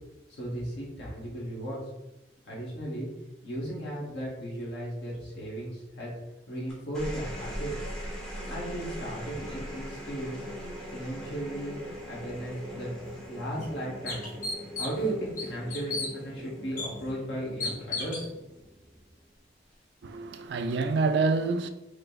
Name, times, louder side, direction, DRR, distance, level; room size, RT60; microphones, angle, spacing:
voice 1, 0.3-1.8 2.4-3.1 3.4-6.1 6.5-7.7 8.5-10.4 10.9-12.9 13.3-14.3 14.7-18.3, right 1 dB, 85° left, 1.4 m, -35 dB
sound 1, 6.7-19.3 20.5-21.0, equal, 5° left, 0.9 m, -41 dB
sound 2, 13.0-13.1 13.6-13.7 14.1-15.1 15.4-16.1 16.8-16.9 17.6-18.3, left 3 dB, 50° left, 0.9 m, -33 dB
voice 2, 20.0-21.7, right 4 dB, 70° right, 0.4 m, -27 dB
5.0 x 2.1 x 3.8 m
head